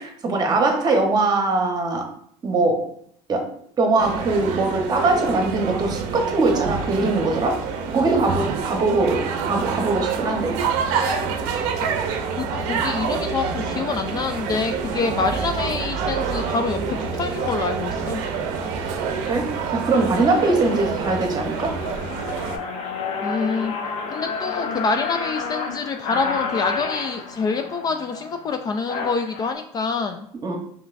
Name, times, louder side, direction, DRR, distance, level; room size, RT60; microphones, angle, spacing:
voice 1, 0.0-2.1 2.4-2.9 3.3-7.6 7.9-10.6 19.3-21.7 30.4-30.6, right 3 dB, 30° right, 3 dB, 1.0 m, -21 dB
sound 1, 4.0-22.6, right 5 dB, 70° right, 0.6 m, -27 dB
voice 2, 12.4-18.2 23.2-23.7 24.1-30.3, left 4 dB, 30° left, 7 dB, 0.3 m, -26 dB
sound 2, 17.3-17.5 18.2-18.4 18.9-19.3 19.8-19.9 20.1-29.5, left 4 dB, 50° left, 0.7 m, -31 dB
5.4 x 3.1 x 2.5 m, 0.64 s
cardioid pair, 120°, 13 cm